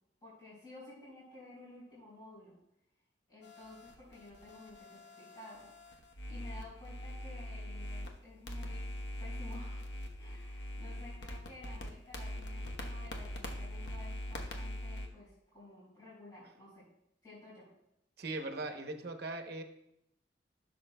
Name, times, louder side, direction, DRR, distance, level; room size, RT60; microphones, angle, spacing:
voice 1, 0.2-2.6 3.3-5.7 6.3-8.9 9.2-9.9 10.2-16.9 17.2-17.7, left 2 dB, 25° left, -9 dB, 3.7 m, -53 dB
sound 1, 3.4-8.1 8.5-15.1, left 1 dB, 75° left, 1.0 m, -42 dB
voice 2, 18.2-19.6, right 2 dB, 60° right, 5 dB, 0.9 m, -39 dB
14.5 x 6.9 x 2.2 m, 0.80 s
head